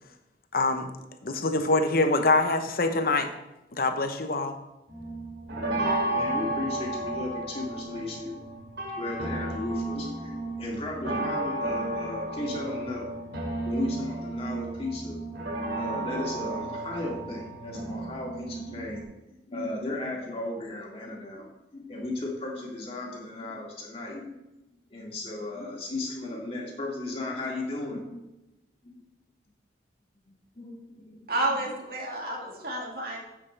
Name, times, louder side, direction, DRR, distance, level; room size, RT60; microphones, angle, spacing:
voice 1, 0.5-0.9 1.2-3.3 3.7-4.5, left 2 dB, 55° left, 7 dB, 0.9 m, -24 dB
sound 1, 4.9-19.0, right 2 dB, 80° right, 2.4 m, -33 dB
voice 2, 6.0-8.4 9.0-13.4 13.7-15.2 15.7-19.0 19.5-21.5 21.7-24.4 24.9-28.2 28.8-29.1 30.6-31.6, left 2 dB, 30° left, -2 dB, 2.1 m, -35 dB
voice 3, 31.3-33.2, right 1 dB, 55° right, -1 dB, 2.1 m, -30 dB
9.6 x 8.2 x 3.3 m, 0.95 s
head